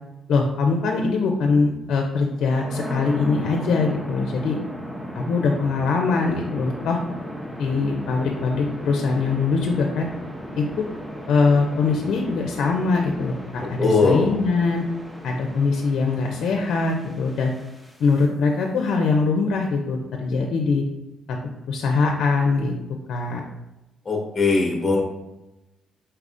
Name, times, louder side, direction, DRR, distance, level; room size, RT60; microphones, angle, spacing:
voice 1, 0.3-4.6 5.1-7.0 7.6-10.1 10.6-10.8 11.3-14.9 15.2-17.5 18.0-20.8 21.3-21.4 21.7-22.7 23.1-23.4, left 4 dB, 70° left, 2 dB, 0.4 m, -22 dB
sound 1, 2.3-18.2, equal, 10° right, 0.7 m, -36 dB
voice 2, 13.8-14.3 24.1-25.0, left 3 dB, 25° left, 0 dB, 0.7 m, -20 dB
4.3 x 3.4 x 2.5 m, 0.99 s
cardioid pair, 90°, 0 cm